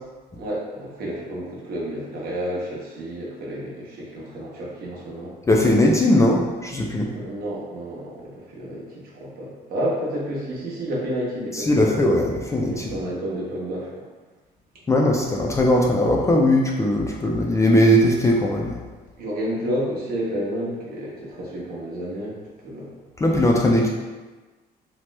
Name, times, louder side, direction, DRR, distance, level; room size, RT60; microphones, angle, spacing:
voice 1, 0.4-5.3 7.1-11.9 12.7-13.9 19.2-22.9, equal, 65° right, -5 dB, 0.9 m, -30 dB
voice 2, 5.5-7.1 11.5-12.9 14.9-18.8 23.2-23.9, left 1 dB, 20° left, -1 dB, 0.3 m, -19 dB
2.9 x 2.0 x 3.2 m, 1.3 s
cardioid pair, 110°, 17 cm